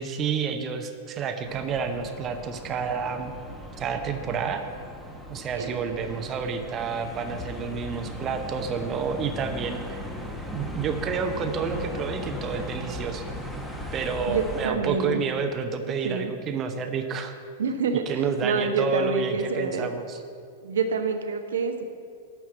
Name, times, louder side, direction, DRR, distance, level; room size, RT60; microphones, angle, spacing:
voice 1, 0.0-3.3 3.8-4.6 5.3-10.0 10.5-13.2 13.9-17.4 18.1-20.2, right 6 dB, 25° right, 6 dB, 0.7 m, -29 dB
sound 1, 1.4-14.7, left 1 dB, ahead, 1.1 m, -37 dB
voice 2, 14.3-15.2 16.0-16.3 17.6-19.9 20.6-21.8, right 5 dB, 65° right, 6 dB, 0.7 m, -27 dB
11.5 x 4.6 x 7.5 m, 2.2 s
figure-of-eight pair, 95°, 0 cm